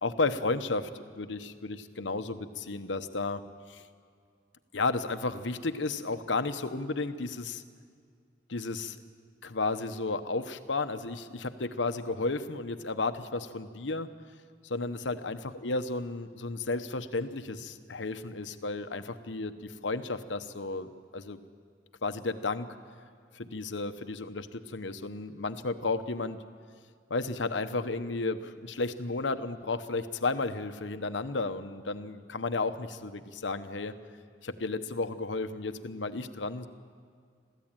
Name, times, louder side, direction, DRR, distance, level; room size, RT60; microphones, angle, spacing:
voice 1, 0.0-3.4 3.7-3.8 4.7-7.6 8.5-9.0 9.4-14.1 14.6-21.4 22.0-22.7 23.3-26.4 27.1-33.9 34.4-36.7, left 3 dB, 85° left, 9 dB, 1.0 m, -33 dB
22.0 x 15.0 x 9.1 m, 2.2 s
head